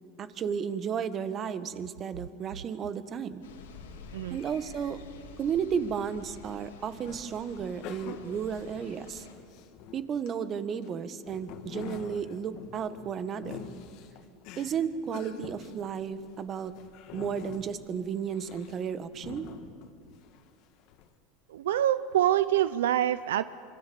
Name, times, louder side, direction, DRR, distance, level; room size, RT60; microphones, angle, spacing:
voice 1, 0.2-3.4 4.3-5.0 5.4-9.2 9.9-13.7 14.6-16.7 17.1-19.5, right 7 dB, 35° right, 12 dB, 1.4 m, -33 dB
sound 1, 3.4-9.3, left 5 dB, 85° left, 3.0 m, -49 dB
sound 2, 7.1-10.3 10.8-20.4 20.8-21.1, left 8 dB, 60° left, 2.1 m, -46 dB
voice 2, 21.5-23.4, right 12 dB, 80° right, 15 dB, 0.5 m, -25 dB
25.5 x 24.5 x 7.0 m, 2.2 s
hypercardioid pair, 100°, 0 cm